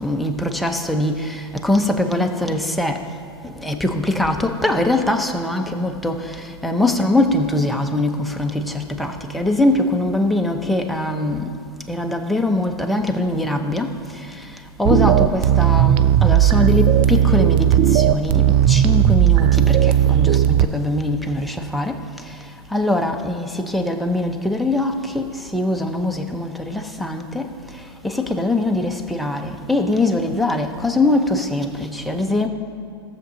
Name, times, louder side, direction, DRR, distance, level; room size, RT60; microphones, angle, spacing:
voice 1, 0.0-1.1 1.6-2.9 3.6-6.2 6.6-8.1 8.4-8.6 9.0-11.4 11.9-13.9 14.8-17.7 17.9-19.6 20.1-21.9 22.7-23.5 23.7-25.2 25.5-27.4 28.2-32.5, left 2 dB, ahead, 2 dB, 0.9 m, -21 dB
sound 1, 14.8-20.6, right 11 dB, 40° right, 0.4 m, -15 dB
17.5 x 7.0 x 2.8 m, 2.4 s
hypercardioid pair, 95°, 13 cm